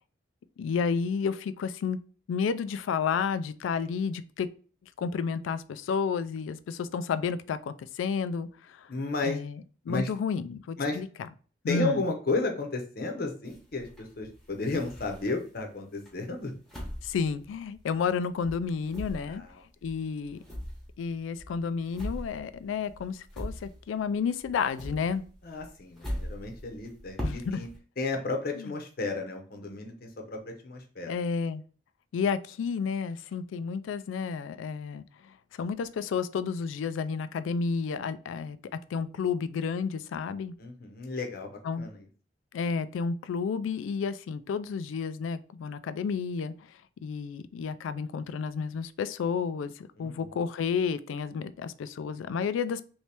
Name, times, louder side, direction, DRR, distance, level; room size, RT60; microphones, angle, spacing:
voice 1, 0.6-2.0 2.3-4.5 5.0-8.9 9.2-11.3 11.6-12.0 17.0-19.4 19.8-20.4 21.0-25.2 27.2-27.7 28.6-28.7 31.1-31.6 32.1-38.6 38.9-40.5 41.6-41.9 42.5-46.5 47.0-52.8, left 6 dB, 90° left, 14 dB, 0.3 m, -31 dB
voice 2, 8.9-9.4 9.9-10.1 10.8-11.0 11.7-16.6 19.3-19.5 25.4-27.7 28.0-31.1 40.6-42.0 50.0-50.4, left 3 dB, 50° left, 4 dB, 0.7 m, -33 dB
sound 1, 13.5-15.6 16.1-18.2 18.4-24.1 24.4-27.8, equal, ahead, 0.9 m, -40 dB
3.1 x 2.8 x 3.3 m, 0.40 s
head